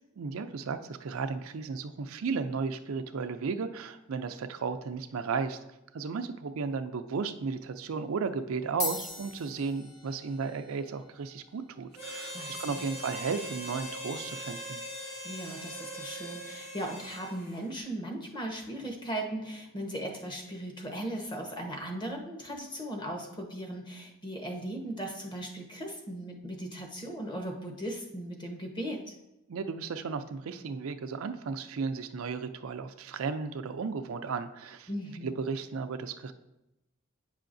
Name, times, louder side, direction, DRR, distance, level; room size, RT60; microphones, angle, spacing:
voice 1, 0.2-5.6 5.9-14.8 29.5-34.9 35.2-36.3, right 5 dB, 80° right, 9 dB, 0.4 m, -34 dB
sound 1, 7.2-7.5 8.3-8.4 8.7-17.3, left 3 dB, 70° left, 2.3 m, -45 dB
Harmonica, 11.9-17.6, equal, 55° left, 1.8 m, -41 dB
voice 2, 12.3-12.8 15.2-29.1 34.9-35.3, right 1 dB, 20° left, 2 dB, 0.9 m, -38 dB
8.9 x 5.7 x 2.6 m, 0.93 s
head